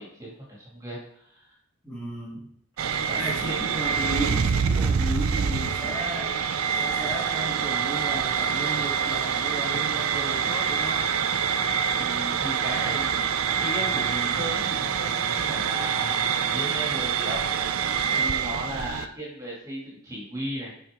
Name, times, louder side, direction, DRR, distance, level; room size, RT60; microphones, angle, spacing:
voice 1, 0.0-1.5 3.0-3.6 11.9-17.4 18.1-20.7, equal, 15° right, -5 dB, 2.2 m, -36 dB
voice 2, 1.8-2.5 3.2-6.4 6.8-11.1 18.1-18.6, equal, 5° left, -4 dB, 1.9 m, -35 dB
sound 1, 2.8-19.1, right 7 dB, 70° right, 0.4 m, -26 dB
8.6 x 4.7 x 3.6 m, 0.70 s
head